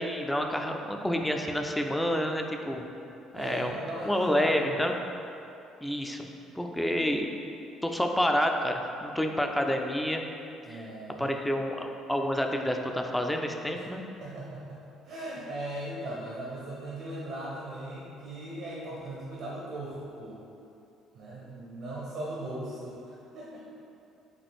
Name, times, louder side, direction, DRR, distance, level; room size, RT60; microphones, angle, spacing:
voice 1, 0.0-2.8 3.3-3.8 4.1-4.9 5.8-6.3 6.6-7.3 7.8-10.2 10.7-10.8 11.2-14.0, equal, 10° left, 3 dB, 0.4 m, -28 dB
voice 2, 3.3-4.8 10.7-11.3 13.7-13.9 14.2-20.4 21.1-23.6, right 1 dB, 65° right, -6 dB, 0.7 m, -38 dB
5.1 x 2.4 x 3.5 m, 2.7 s
hypercardioid pair, 55°, 0 cm